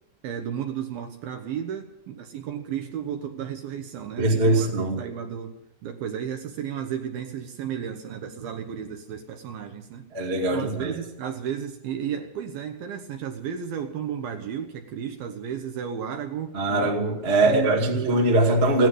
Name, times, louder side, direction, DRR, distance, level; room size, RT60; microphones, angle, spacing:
voice 1, 0.2-4.7 5.0-10.1 10.5-16.9 17.4-18.1, right 8 dB, 70° right, 5 dB, 2.4 m, -33 dB
voice 2, 4.2-5.0 10.1-10.9 16.5-18.9, right 2 dB, 35° right, 0 dB, 1.0 m, -22 dB
16.5 x 11.0 x 7.8 m, 0.86 s
omnidirectional pair, 5.1 m